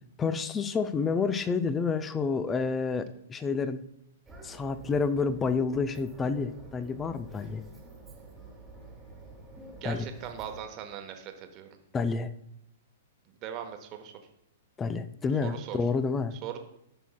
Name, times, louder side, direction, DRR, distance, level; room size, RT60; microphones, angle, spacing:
voice 1, 0.2-3.8 4.4-7.6 9.8-10.1 11.9-12.3 14.8-16.4, left 5 dB, 20° left, 12 dB, 0.4 m, -29 dB
sound 1, 4.3-10.6, right 2 dB, 10° right, 1.6 m, -49 dB
voice 2, 9.8-11.7 13.4-14.1 15.4-15.8 16.4-16.6, right 9 dB, 35° right, 6 dB, 1.0 m, -39 dB
11.0 x 6.0 x 2.2 m, 0.79 s
figure-of-eight pair, 110°, 0 cm